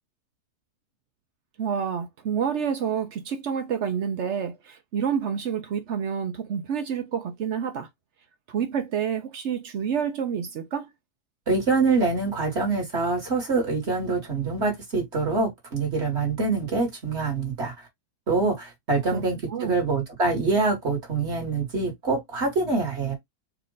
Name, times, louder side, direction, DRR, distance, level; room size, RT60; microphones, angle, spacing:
voice 1, 1.6-7.9 8.5-10.9 19.1-19.2 19.5-19.8, right 7 dB, 60° right, 0.8 m, -28 dB
voice 2, 11.5-17.7 18.3-23.1, right 3 dB, 40° right, 1.8 m, -25 dB
4.4 x 2.5 x 3.9 m
omnidirectional pair, 1.8 m